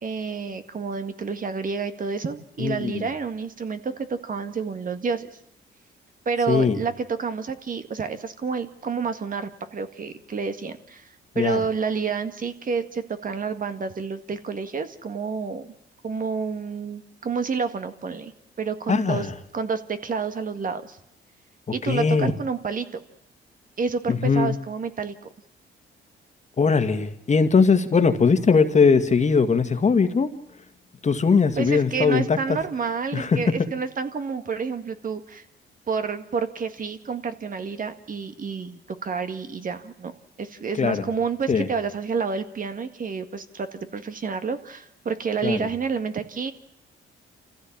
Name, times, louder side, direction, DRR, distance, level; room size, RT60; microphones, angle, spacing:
voice 1, 0.0-5.3 6.3-11.1 11.4-15.7 16.0-18.3 18.6-19.3 19.5-21.0 21.7-22.9 23.8-25.1 31.6-35.4 35.9-40.1 40.4-46.5, right 5 dB, 45° right, 9 dB, 1.9 m, -29 dB
voice 2, 2.6-3.0 6.5-6.8 11.4-11.6 18.9-19.3 21.8-22.3 24.1-24.5 26.6-30.3 31.0-32.6 33.1-33.4 40.8-41.0 41.5-41.7 45.4-45.7, left 5 dB, 35° left, 8 dB, 2.0 m, -20 dB
27.0 x 15.0 x 8.7 m, 0.81 s
cardioid pair, 90°, 20 cm